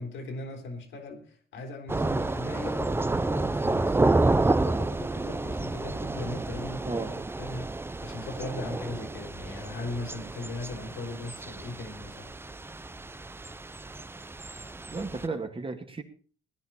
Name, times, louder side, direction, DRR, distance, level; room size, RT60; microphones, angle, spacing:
voice 1, 0.0-4.2 4.6-12.3, left 2 dB, 80° left, 3.4 m, -39 dB
Thunder / Rain, 1.9-15.3, right 2 dB, 10° right, 0.5 m, -30 dB
voice 2, 14.9-16.0, right 3 dB, 25° right, 1.9 m, -33 dB
17.0 x 10.5 x 4.3 m
cardioid pair, 90°, 20 cm